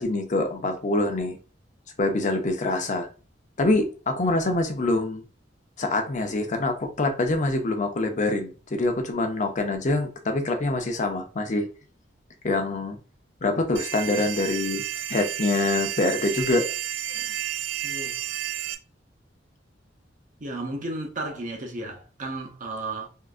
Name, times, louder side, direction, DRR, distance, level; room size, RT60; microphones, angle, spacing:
voice 1, 0.0-1.4 2.0-3.1 3.6-5.2 5.8-11.7 12.4-13.0 13.4-14.8 15.1-16.7 17.1-17.3, left 2 dB, 40° left, 0.7 m, -25 dB
sound 1, 13.7-18.7, right 11 dB, 70° right, 0.4 m, -31 dB
voice 2, 17.8-18.1 20.4-23.1, right 2 dB, 45° right, 0.8 m, -33 dB
3.7 x 2.5 x 2.4 m
head